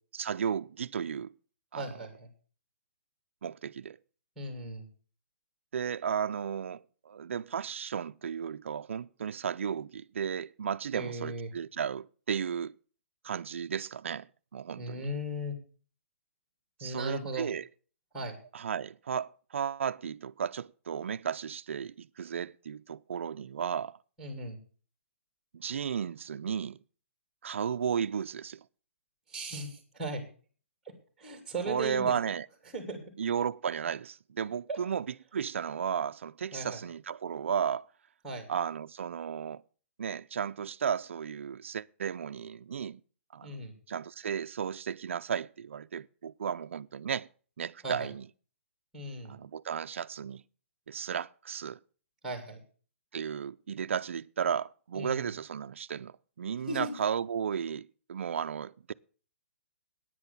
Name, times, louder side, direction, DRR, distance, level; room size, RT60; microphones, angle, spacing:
voice 1, 0.1-1.3 1.7-1.8 3.4-4.0 5.7-12.7 13.2-15.1 16.8-17.7 18.5-24.0 25.5-26.8 27.4-28.6 31.7-32.5 33.2-35.1 35.3-37.9 38.5-39.6 40.0-43.0 43.3-43.6 43.9-47.3 47.6-48.3 49.3-50.4 50.9-51.8 53.1-58.9, right 7 dB, 60° right, 0.5 m, -34 dB
voice 2, 1.7-2.3 4.4-4.9 10.9-11.5 14.8-15.6 16.8-17.5 18.1-18.3 24.2-24.6 29.3-30.2 31.2-32.1 32.7-33.0 34.7-34.8 36.5-36.8 38.2-38.5 43.4-43.7 47.8-48.1 48.9-49.3 52.2-52.6 54.9-55.3 56.7-57.0, right 1 dB, 5° right, 2.8 m, -37 dB
9.7 x 9.2 x 7.1 m
hypercardioid pair, 175°, 7 cm